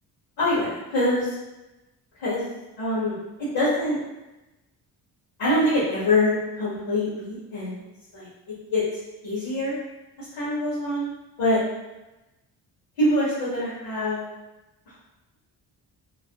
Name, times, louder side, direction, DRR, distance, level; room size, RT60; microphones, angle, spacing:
voice 1, 0.4-1.3 2.2-2.4 2.8-4.0 5.4-7.8 8.1-8.8 9.2-9.8 10.2-11.1 11.4-11.6 13.0-14.2, left 1 dB, 85° left, -12 dB, 1.5 m, -24 dB
3.0 x 2.2 x 2.9 m, 1.0 s
supercardioid pair, 60°, 43 cm